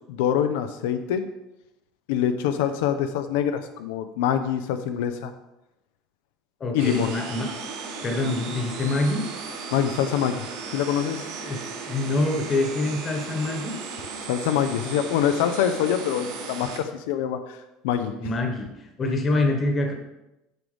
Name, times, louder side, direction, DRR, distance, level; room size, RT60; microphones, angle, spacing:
voice 1, 0.1-1.2 2.1-5.3 6.7-7.1 9.7-10.5 10.7-11.3 14.2-17.6 17.8-18.1, left 9 dB, 85° left, 8 dB, 0.6 m, -25 dB
voice 2, 6.6-7.5 8.0-9.2 11.4-13.7 18.2-18.7 19.0-19.9, left 2 dB, 25° left, 3 dB, 1.2 m, -25 dB
sound 1, 6.8-16.8, right 4 dB, 80° right, 1.9 m, -36 dB
9.0 x 6.2 x 3.4 m, 0.93 s
cardioid pair, 155°, 0 cm